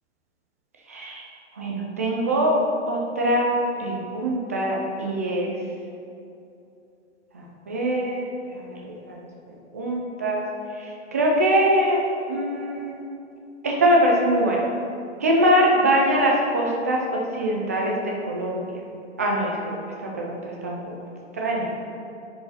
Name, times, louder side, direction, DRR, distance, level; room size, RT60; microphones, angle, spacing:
voice 1, 0.9-1.2 1.6-2.6 2.9-5.5 7.3-9.2 9.7-10.4 10.8-12.0 12.3-13.0 13.6-14.6 15.2-17.0 17.3-18.8 19.2-19.6 20.0-20.8 21.3-21.7, right 1 dB, 15° right, -2 dB, 0.3 m, -23 dB
10.5 x 4.7 x 4.1 m, 2.7 s
hypercardioid pair, 155°, 37 cm